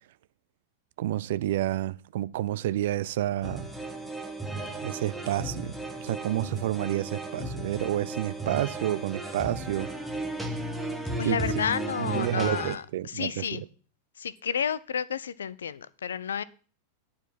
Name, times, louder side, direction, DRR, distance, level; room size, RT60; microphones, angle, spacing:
voice 1, 1.0-3.7 4.8-9.9 11.2-11.4 12.0-13.6, right 13 dB, 55° right, 0.4 m, -30 dB
sound 1, 3.4-12.8, right 2 dB, 5° right, 1.4 m, -35 dB
voice 2, 11.2-13.6 14.2-16.4, left 7 dB, 65° left, 0.5 m, -31 dB
9.9 x 4.8 x 7.4 m
figure-of-eight pair, 90°, 0 cm